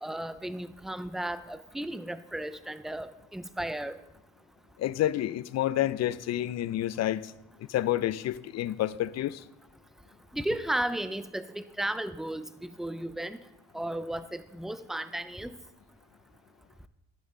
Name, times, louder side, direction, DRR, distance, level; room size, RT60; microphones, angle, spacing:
voice 1, 0.0-4.0 10.3-13.4 13.7-15.5, right 1 dB, ahead, 0.5 m, -34 dB
voice 2, 4.8-7.3 7.6-9.4, left 13 dB, 60° left, 0.5 m, -29 dB
11.0 x 8.9 x 3.7 m
cardioid pair, 90°, 30 cm